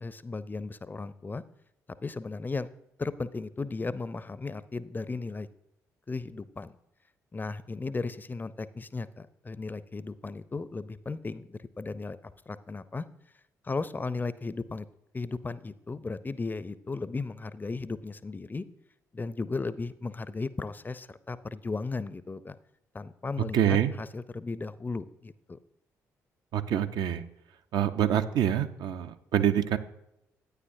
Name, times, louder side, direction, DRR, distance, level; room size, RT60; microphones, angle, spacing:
voice 1, 0.0-1.4 2.0-2.7 3.0-5.5 6.1-6.7 7.3-13.1 13.6-14.9 15.1-18.6 19.1-22.6 22.9-25.6, left 3 dB, 20° left, 16 dB, 0.5 m, -35 dB
voice 2, 23.5-23.9 26.5-27.2 27.7-29.8, right 10 dB, 60° right, 9 dB, 0.6 m, -26 dB
11.5 x 9.4 x 2.6 m, 0.82 s
figure-of-eight pair, 45°, 8 cm